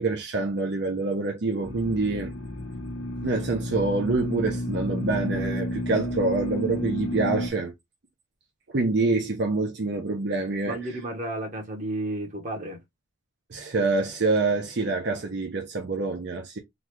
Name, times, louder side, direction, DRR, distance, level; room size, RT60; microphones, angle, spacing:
voice 1, 0.0-2.3 3.2-7.7 8.7-10.8 13.5-16.6, right 3 dB, 60° right, 0.7 m, -26 dB
sound 1, 1.6-7.5, equal, 90° left, 0.9 m, -31 dB
voice 2, 10.6-12.8, right 1 dB, 40° right, 1.1 m, -32 dB
3.9 x 2.4 x 3.1 m
head